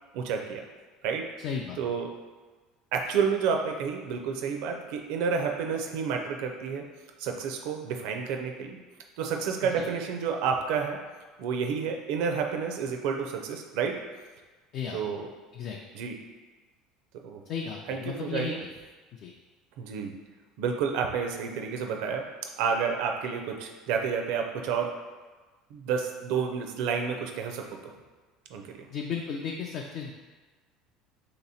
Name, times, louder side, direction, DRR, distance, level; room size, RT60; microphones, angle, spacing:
voice 1, 0.1-0.6 1.0-1.3 1.8-2.2 2.9-6.9 7.2-8.8 9.2-11.0 11.4-14.0 14.9-15.3 15.9-16.2 17.1-17.4 17.9-18.6 19.8-20.1 20.6-22.3 22.6-25.0 25.7-27.9 28.5-28.7, right 6 dB, 75° right, 3 dB, 0.5 m, -30 dB
voice 2, 1.4-1.8 9.8-9.9 14.7-15.0 15.5-15.8 17.5-18.5 19.2-19.3 28.9-30.1, left 6 dB, 55° left, 0 dB, 0.4 m, -34 dB
3.2 x 2.9 x 4.1 m, 1.3 s
supercardioid pair, 105°, 0 cm